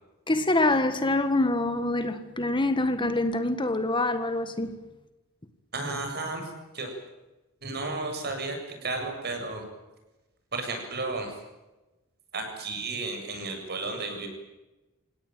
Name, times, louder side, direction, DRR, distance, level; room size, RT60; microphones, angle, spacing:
voice 1, 0.3-4.7, left 2 dB, 25° left, 1.7 m, -25 dB
voice 2, 5.7-6.9 7.6-9.7 10.5-11.3 12.3-14.3, right 3 dB, 50° right, 7.7 m, -33 dB
28.5 x 17.5 x 9.3 m
head